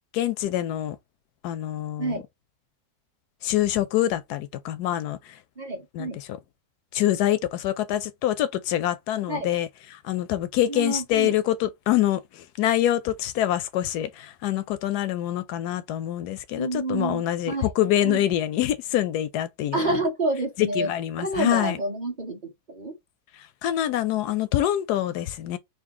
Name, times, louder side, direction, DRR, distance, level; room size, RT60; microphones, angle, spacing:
voice 1, 0.1-1.0 1.4-2.2 3.4-5.4 5.9-6.4 6.9-9.7 10.0-20.0 20.6-21.8 23.6-25.6, left 12 dB, 85° left, 1.1 m, -25 dB
voice 2, 5.6-6.2 9.3-9.5 10.7-11.3 16.6-17.7 18.0-18.2 19.7-20.9 21.2-22.4 22.7-22.9, right 2 dB, 35° right, 1.1 m, -28 dB
4.0 x 2.7 x 3.5 m
omnidirectional pair, 1.7 m